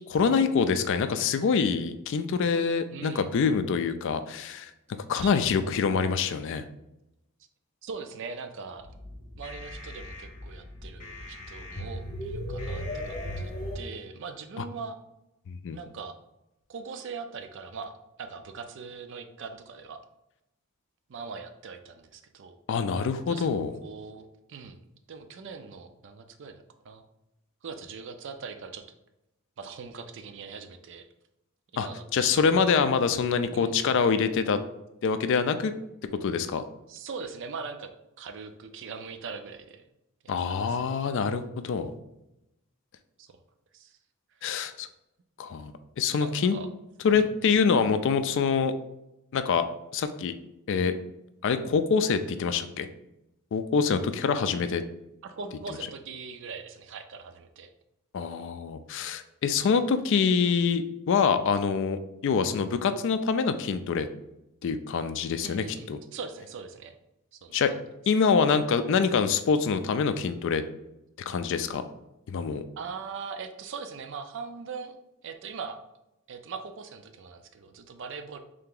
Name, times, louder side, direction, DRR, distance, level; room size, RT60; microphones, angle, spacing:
voice 1, 0.1-4.7 5.1-6.7 15.5-15.8 22.7-23.7 31.8-34.6 35.0-35.7 36.2-36.6 40.3-41.9 44.4-44.9 45.4-45.7 46.0-46.5 47.0-48.7 49.3-49.6 49.9-50.3 50.7-50.9 51.4-52.9 53.5-54.8 58.1-64.1 64.6-66.0 67.5-67.7 68.1-70.6 71.3-71.8 72.3-72.6, left 5 dB, 55° left, 10 dB, 0.3 m, -25 dB
voice 2, 2.9-3.3 5.2-5.3 7.8-8.9 9.4-15.0 15.7-16.2 16.7-20.0 21.1-22.6 23.3-23.5 23.8-24.8 25.1-26.5 26.8-27.0 27.6-28.8 29.6-31.1 31.7-32.8 33.5-34.0 36.9-37.9 38.2-39.9 40.2-40.9 43.2-43.4 43.7-44.0 46.2-46.7 47.1-47.5 55.2-57.7 65.4-66.9 67.3-67.6 72.8-75.0 75.2-75.8 76.3-78.4, right 5 dB, 55° right, 8 dB, 0.4 m, -41 dB
sound 1, 8.8-13.8, left 1 dB, 35° left, 0.9 m, -37 dB
3.3 x 2.8 x 3.8 m, 0.87 s
head